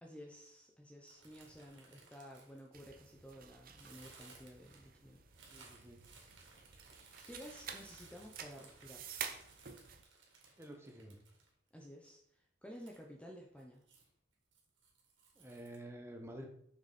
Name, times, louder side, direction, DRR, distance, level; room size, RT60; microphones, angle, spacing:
voice 1, 0.0-5.2 7.2-9.1 11.7-12.2 12.6-13.8, equal, 5° left, 0 dB, 0.7 m, -53 dB
sound 1, 1.1-3.2 3.7-11.7 12.0-12.1 12.7-13.0 13.5-14.1 14.5-15.8, right 4 dB, 85° right, 2.3 m, -61 dB
sound 2, 2.7-10.0, right 7 dB, 50° right, 0.8 m, -50 dB
voice 2, 5.5-6.0 10.6-11.2 15.3-16.5, right 1 dB, 15° right, 3 dB, 1.2 m, -50 dB
6.7 x 6.5 x 4.2 m, 0.70 s
head